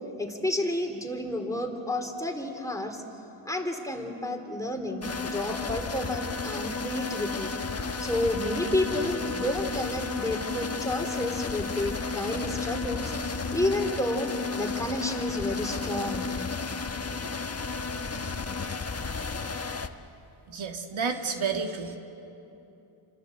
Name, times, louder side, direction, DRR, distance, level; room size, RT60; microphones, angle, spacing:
voice 1, 0.2-3.0 3.4-7.5 8.0-16.3, left 1 dB, 5° left, 3 dB, 3.3 m, -31 dB
sound 1, 5.0-19.9, left 4 dB, 30° left, 1.3 m, -32 dB
voice 2, 20.5-22.0, right 5 dB, 70° right, 4 dB, 2.0 m, -30 dB
28.5 x 26.0 x 7.9 m, 2.9 s
cardioid pair, 95°, 49 cm